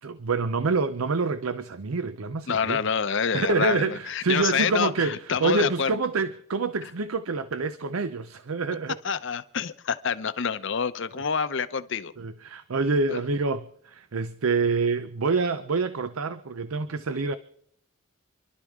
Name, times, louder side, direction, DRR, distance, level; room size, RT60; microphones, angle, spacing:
voice 1, 0.0-2.8 3.3-9.0 12.2-17.3, right 4 dB, 85° right, 0.6 m, -27 dB
voice 2, 2.5-6.0 9.0-12.1 13.1-13.2, left 6 dB, 60° left, 0.7 m, -27 dB
28.0 x 12.0 x 3.6 m
head